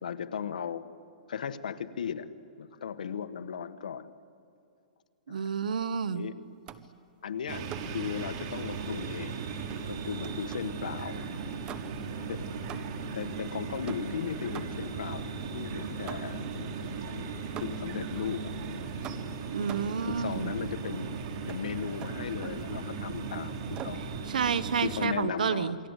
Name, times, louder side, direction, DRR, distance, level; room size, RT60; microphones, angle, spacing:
voice 1, 0.0-0.9 1.3-2.3 2.6-4.1 5.3-5.5 6.1-6.4 7.2-9.5 9.8-11.3 12.3-12.4 13.1-17.3 17.6-18.5 18.8-18.9 19.6-21.1 21.5-24.1 24.8-25.8, left 7 dB, 80° left, 10 dB, 1.5 m, -37 dB
voice 2, 5.3-6.3 19.5-20.5 24.3-25.8, right 6 dB, 85° right, 15 dB, 1.2 m, -30 dB
sound 1, 6.7-7.0 7.7-8.1 9.7-10.8 11.6-12.2 12.7-13.2 13.9-15.0 16.1-16.5 17.6-18.0 19.0-20.1 21.5-21.7 22.0-22.7 23.7-24.1, right 9 dB, 20° right, 0.9 m, -44 dB
sound 2, 7.5-25.1, right 4 dB, 45° right, 3.0 m, -37 dB
28.0 x 23.0 x 8.3 m, 2.6 s
hypercardioid pair, 155°, 4 cm